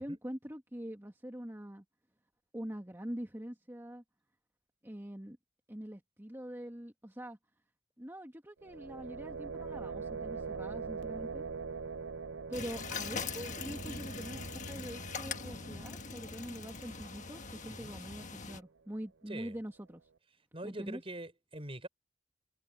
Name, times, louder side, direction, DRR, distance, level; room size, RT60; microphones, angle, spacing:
voice 1, 0.0-1.8 2.5-4.0 4.8-5.4 5.7-7.4 8.0-11.4 12.5-20.0 20.6-21.0, equal, 15° right, 1.8 m, -44 dB
sound 1, 8.6-18.5, right 5 dB, 80° right, 0.7 m, -44 dB
sound 2, 12.5-18.6, left 5 dB, 40° left, 1.3 m, -42 dB
voice 2, 19.3-19.6 20.5-21.9, right 1 dB, 30° right, 5.5 m, -44 dB
head